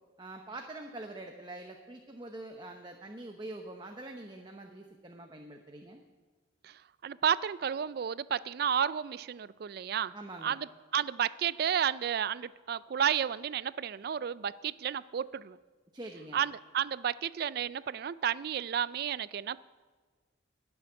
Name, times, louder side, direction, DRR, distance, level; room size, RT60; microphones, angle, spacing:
voice 1, 0.2-6.0 10.1-10.6 15.9-16.4, right 2 dB, 20° right, 3 dB, 0.7 m, -45 dB
voice 2, 6.6-10.1 10.4-10.7 10.9-15.6 16.3-19.6, right 8 dB, 50° right, 19 dB, 0.3 m, -32 dB
11.5 x 7.0 x 9.5 m, 1.4 s
head